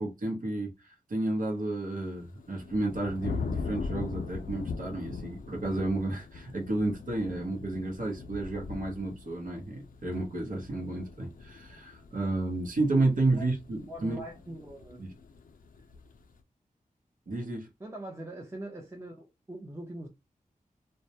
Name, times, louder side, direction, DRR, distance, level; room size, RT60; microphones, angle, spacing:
voice 1, 0.0-14.2 15.0-15.1 17.3-17.7, right 2 dB, 65° right, 0.7 m, -31 dB
sound 1, 2.1-16.3, left 4 dB, 70° left, 0.4 m, -41 dB
voice 2, 13.9-15.1 17.8-20.1, right 1 dB, 20° right, 0.5 m, -42 dB
2.2 x 2.0 x 2.8 m
wide cardioid pair, 95°, 15 cm